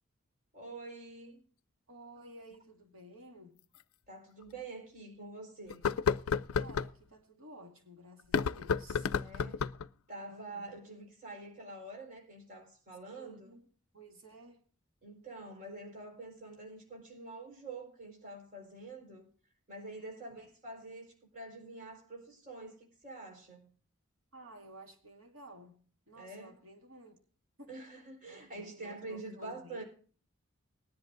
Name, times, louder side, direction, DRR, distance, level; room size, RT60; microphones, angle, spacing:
voice 1, 0.5-1.4 4.1-5.8 9.1-9.6 10.1-13.5 15.0-19.3 19.7-23.7 26.1-26.5 27.7-29.8, right 2 dB, 40° right, 4.4 m, -46 dB
voice 2, 1.9-3.6 6.6-9.1 10.3-10.8 13.1-13.7 13.9-14.6 20.0-20.2 24.3-25.8 26.1-27.2 27.6-27.8 28.3-29.8, right 1 dB, 75° right, 2.6 m, -53 dB
sound 1, 2.5-2.6 3.8-3.9 4.4-4.5 5.7-6.9 8.2-9.9, left 6 dB, 90° left, 0.4 m, -31 dB
20.5 x 10.5 x 2.6 m
head